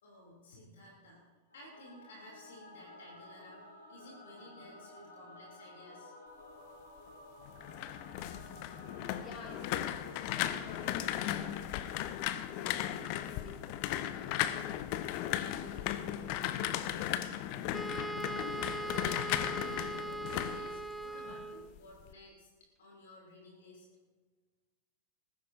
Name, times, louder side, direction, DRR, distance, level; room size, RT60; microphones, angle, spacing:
voice 1, 0.0-6.1 10.1-10.2 18.3-22.5 22.8-23.9, left 1 dB, 60° left, -1 dB, 3.0 m, -55 dB
Singing / Musical instrument, 1.5-12.8, left 1 dB, 85° left, 4.0 m, -54 dB
sound 1, 7.4-21.4 21.8-22.1, left 12 dB, 45° left, 0.6 m, -36 dB
voice 2, 8.9-12.1 12.7-13.8 14.1-17.1, left 3 dB, 30° left, -1 dB, 3.6 m, -53 dB
Wind instrument woodwind instrument, 17.7-21.8, right 2 dB, ahead, 0.4 m, -40 dB
20.0 x 15.0 x 2.7 m, 1.4 s
figure-of-eight pair, 90°, 0 cm